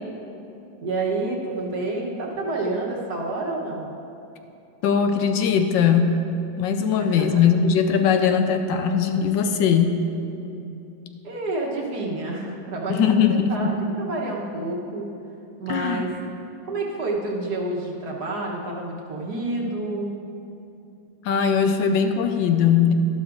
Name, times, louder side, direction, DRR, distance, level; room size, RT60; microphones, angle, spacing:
voice 1, 0.8-3.9 7.0-7.3 11.2-15.1 15.6-16.1 16.7-20.1, right 2 dB, 60° right, -1 dB, 1.6 m, -29 dB
voice 2, 4.8-6.1 6.6-10.0 12.9-13.5 15.7-16.1 21.2-22.9, left 7 dB, 80° left, 6 dB, 1.3 m, -20 dB
12.0 x 11.5 x 2.5 m, 2.8 s
omnidirectional pair, 2.1 m